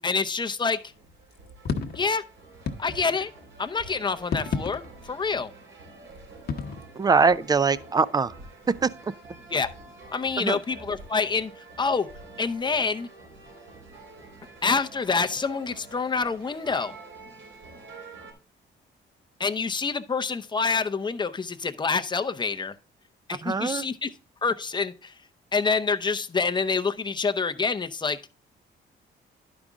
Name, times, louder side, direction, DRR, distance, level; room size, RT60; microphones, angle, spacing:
voice 1, 0.0-0.8 1.9-2.2 2.8-3.3 3.6-4.8 5.1-5.5 9.5-9.7 10.1-11.5 11.8-12.1 12.4-13.1 14.6-17.0 19.4-22.7 23.3-24.1 24.4-25.1 25.5-28.2, left 4 dB, 20° left, 0.6 m, -26 dB
sound 1, 0.6-18.3, right 3 dB, 70° right, 3.6 m, -47 dB
sound 2, 1.3-2.1 2.7-3.3 4.2-5.2 6.5-6.8, left 5 dB, 55° left, 1.0 m, -31 dB
voice 2, 7.0-8.3 8.8-9.1 10.4-10.6 23.3-23.8, right 4 dB, 20° right, 0.4 m, -23 dB
11.0 x 5.1 x 3.6 m
cardioid pair, 90°, 20 cm